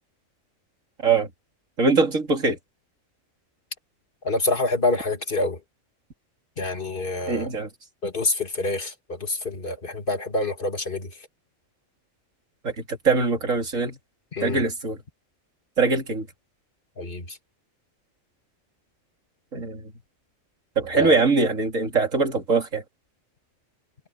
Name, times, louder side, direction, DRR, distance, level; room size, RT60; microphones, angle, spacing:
voice 1, 1.8-2.6 7.3-7.7 12.6-14.0 14.4-15.0 15.8-16.3 19.5-19.8 20.8-22.8, right 4 dB, 70° right, 3.2 m, -22 dB
voice 2, 4.2-5.6 6.6-7.5 8.0-11.1 14.3-14.6 17.0-17.4 20.9-21.2, left 2 dB, 40° left, 2.1 m, -26 dB
omnidirectional pair, 1.4 m